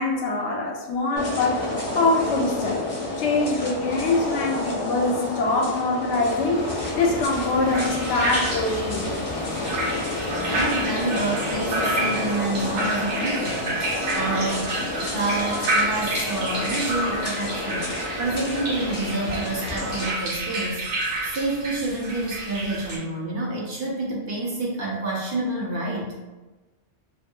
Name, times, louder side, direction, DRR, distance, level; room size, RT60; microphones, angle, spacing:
voice 1, 0.0-1.6 1.9-2.8 3.2-6.6 6.9-9.1, left 3 dB, 80° left, 0 dB, 0.9 m, -24 dB
sound 1, 1.2-20.1, left 2 dB, 40° left, 0.6 m, -30 dB
sound 2, 7.0-23.0, right 1 dB, 85° right, 1.0 m, -30 dB
voice 2, 10.5-20.8 21.2-26.1, right 2 dB, 55° right, -4 dB, 0.8 m, -28 dB
2.6 x 2.5 x 2.7 m, 1.1 s
omnidirectional pair, 1.2 m